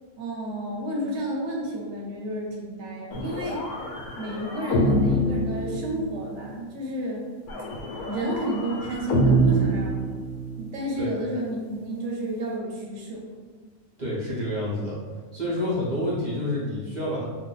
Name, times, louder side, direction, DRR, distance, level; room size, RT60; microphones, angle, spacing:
voice 1, 0.2-3.7 4.2-7.3 8.1-9.9 10.6-13.2, right 1 dB, 60° right, -3 dB, 1.0 m, -31 dB
sound 1, 3.1-6.4 7.5-10.7, right 1 dB, 85° left, 1.1 m, -26 dB
voice 2, 14.0-15.0 15.3-17.2, left 1 dB, 40° right, -7 dB, 0.7 m, -28 dB
2.6 x 2.2 x 3.8 m, 1.5 s
omnidirectional pair, 1.5 m